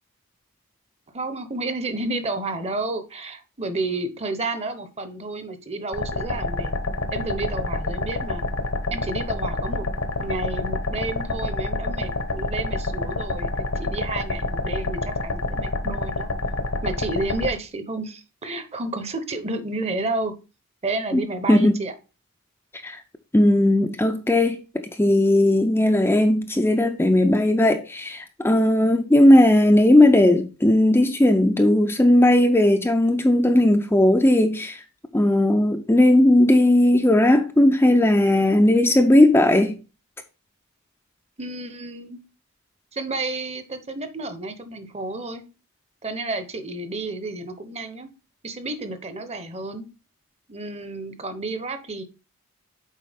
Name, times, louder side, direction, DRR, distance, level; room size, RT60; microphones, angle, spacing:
voice 1, 1.1-6.7 7.1-8.4 8.9-9.9 10.2-16.3 16.8-20.3 20.8-21.9 41.4-42.2 42.9-45.4 46.0-48.1 48.4-49.9 50.5-52.0, right 2 dB, 30° right, 0.8 m, -31 dB
sound 1, 5.9-17.5, left 2 dB, 65° left, 1.0 m, -27 dB
voice 2, 21.1-21.7 22.8-23.0 23.3-34.8 35.1-39.8, left 1 dB, 10° left, 0.4 m, -17 dB
7.4 x 4.7 x 3.4 m
head